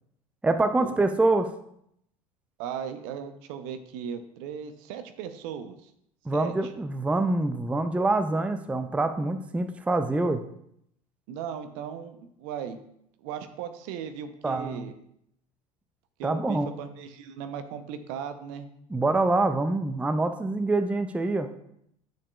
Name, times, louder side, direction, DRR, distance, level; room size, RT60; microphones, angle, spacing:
voice 1, 0.4-1.5 6.3-10.4 14.4-14.9 16.2-16.7 18.9-21.5, right 2 dB, 5° right, 9 dB, 0.5 m, -25 dB
voice 2, 2.6-5.9 6.3-6.7 11.3-12.8 13.2-14.9 16.2-18.7, right 8 dB, 55° right, 10 dB, 0.7 m, -37 dB
9.9 x 6.5 x 2.3 m, 0.73 s
figure-of-eight pair, 70°, 19 cm